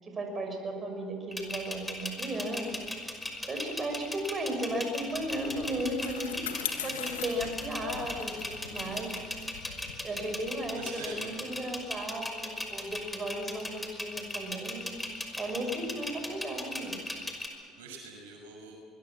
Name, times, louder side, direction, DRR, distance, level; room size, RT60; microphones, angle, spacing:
voice 1, 0.0-2.8 3.1-6.5 6.8-9.2 10.0-14.9 15.4-17.0, right 1 dB, 35° right, 4 dB, 6.4 m, -35 dB
sound 1, 1.3-17.5, left 1 dB, 10° left, 5.6 m, -37 dB
Bicycle, 4.8-11.6, left 10 dB, 85° left, 1.8 m, -42 dB
voice 2, 6.8-7.2 8.8-9.1 10.7-11.3 17.7-18.7, right 3 dB, 85° right, 2 dB, 5.9 m, -45 dB
24.5 x 22.5 x 7.3 m, 2.3 s
hypercardioid pair, 65°, 0 cm